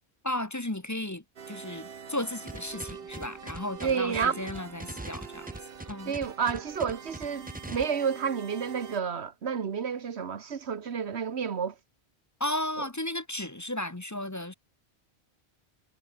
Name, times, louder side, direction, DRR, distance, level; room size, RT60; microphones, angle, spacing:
voice 1, 0.2-5.5 5.9-6.1 12.4-14.5, left 1 dB, 15° left, 1.0 m, -34 dB
sound 1, 1.4-9.0, right 6 dB, 60° right, 1.3 m, -45 dB
sound 2, 2.5-7.8, right 1 dB, 10° right, 1.4 m, -41 dB
voice 2, 3.8-4.4 6.1-11.7 12.8-12.9, right 6 dB, 75° right, 1.5 m, -30 dB
omnidirectional pair, 1.1 m